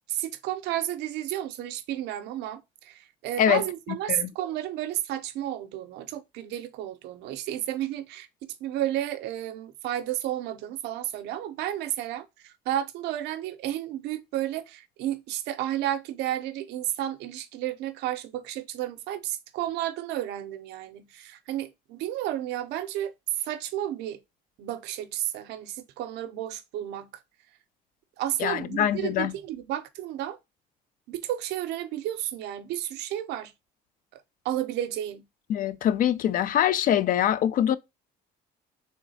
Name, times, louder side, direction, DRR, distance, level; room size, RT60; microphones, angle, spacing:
voice 1, 0.0-8.3 8.6-24.2 24.6-27.1 28.2-30.4 31.1-33.5 34.1-35.2, right 12 dB, 85° right, 0.6 m, -32 dB
voice 2, 28.4-29.3 35.5-37.8, left 10 dB, 55° left, 0.4 m, -23 dB
3.5 x 3.2 x 4.0 m
cardioid pair, 110°, 17 cm